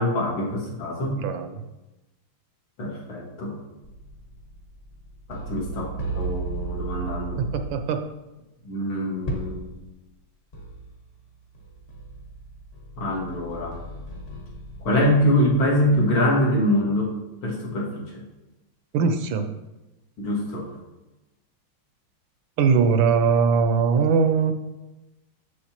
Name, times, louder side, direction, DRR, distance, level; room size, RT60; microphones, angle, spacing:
voice 1, 0.0-1.2 2.8-3.6 5.3-5.9 6.1-7.4 8.6-9.8 13.0-13.8 14.8-17.1 17.4-18.0 20.2-20.7, left 1 dB, 80° left, -3 dB, 2.5 m, -24 dB
voice 2, 1.0-1.6 7.4-8.0 18.9-19.5 22.6-24.5, right 5 dB, 75° right, 7 dB, 1.3 m, -21 dB
sound 1, 3.8-8.0 9.3-9.7 10.1-10.2 10.5-11.1 11.5-16.2, right 3 dB, 35° left, 1.2 m, -36 dB
8.0 x 6.8 x 2.9 m, 1.0 s
omnidirectional pair, 2.3 m